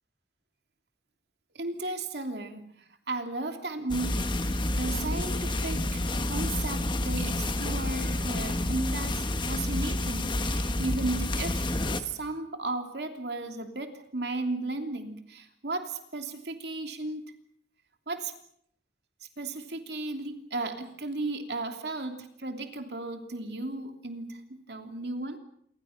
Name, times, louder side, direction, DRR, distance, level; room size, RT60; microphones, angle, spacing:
voice 1, 1.5-2.7 3.1-17.3 18.1-18.3 19.4-25.4, right 2 dB, 65° right, 5 dB, 3.1 m, -35 dB
sound 1, 3.9-12.0, left 1 dB, 25° left, 1.4 m, -29 dB
28.0 x 24.5 x 5.9 m, 0.68 s
head